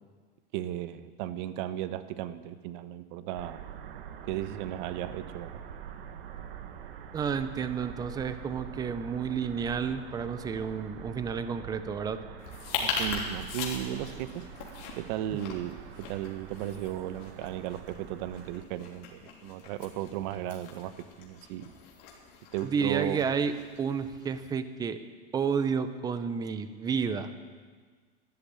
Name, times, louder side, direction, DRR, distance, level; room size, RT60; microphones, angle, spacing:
voice 1, 0.5-3.6 4.3-5.6 12.8-14.4 15.0-20.9 21.2-21.7 22.5-23.2, right 12 dB, 55° right, 13 dB, 0.9 m, -35 dB
sound 1, 3.4-18.6, right 8 dB, 70° right, 1.4 m, -45 dB
voice 2, 7.1-12.2 22.6-25.0 25.3-27.3, right 6 dB, 15° right, 11 dB, 0.6 m, -31 dB
sound 2, 12.4-24.5, left 5 dB, 50° left, 3.2 m, -40 dB
13.0 x 11.5 x 8.8 m, 1.5 s
supercardioid pair, 155°, 30 cm